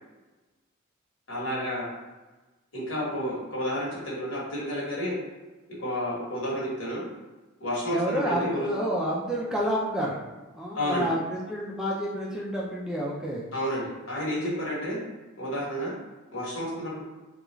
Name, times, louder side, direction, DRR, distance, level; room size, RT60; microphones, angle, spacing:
voice 1, 1.3-1.9 2.7-5.2 5.8-7.0 7.6-8.7 10.7-11.1 13.5-15.0 15.4-15.9 16.3-17.0, equal, 60° left, -5 dB, 1.3 m, -30 dB
voice 2, 7.9-10.2 10.5-13.4, equal, 5° right, -5 dB, 0.4 m, -29 dB
3.6 x 2.4 x 3.0 m, 1.2 s
head